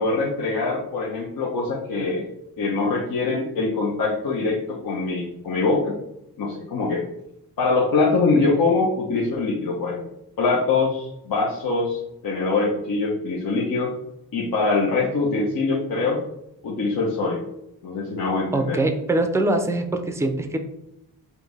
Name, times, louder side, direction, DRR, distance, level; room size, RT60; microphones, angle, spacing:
voice 1, 0.0-2.3 2.6-6.0 6.4-7.0 7.6-10.0 10.4-13.9 14.3-16.2 16.6-17.4 17.8-18.8, left 3 dB, 65° left, -5 dB, 0.9 m, -23 dB
voice 2, 18.5-20.6, right 2 dB, 5° right, 6 dB, 0.5 m, -23 dB
4.5 x 2.7 x 3.3 m, 0.82 s
cardioid pair, 80°, 38 cm